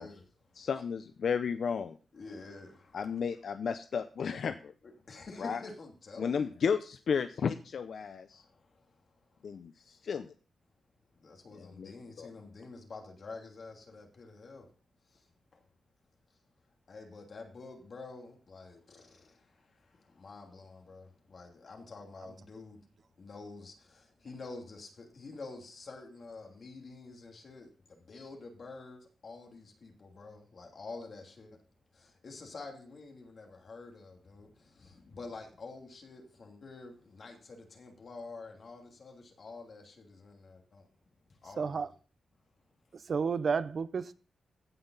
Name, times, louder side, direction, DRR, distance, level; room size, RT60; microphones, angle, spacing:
voice 1, 0.0-0.7 2.1-3.2 4.8-6.5 8.3-9.0 9.3-9.4 11.2-14.7 15.1-15.3 15.5-15.6 16.9-22.8 23.2-31.6 31.9-40.9 41.4-41.8, left 3 dB, 50° left, 2.7 m, -48 dB
voice 2, 0.6-1.9 2.9-4.7 5.4-5.6 6.2-8.4 9.4-10.3 11.5-11.9 12.2-12.3, left 6 dB, 65° left, 0.6 m, -33 dB
voice 3, 41.6-41.9 43.1-44.1, right 5 dB, 55° right, 0.5 m, -31 dB
16.0 x 5.7 x 4.0 m
wide cardioid pair, 120°, 0 cm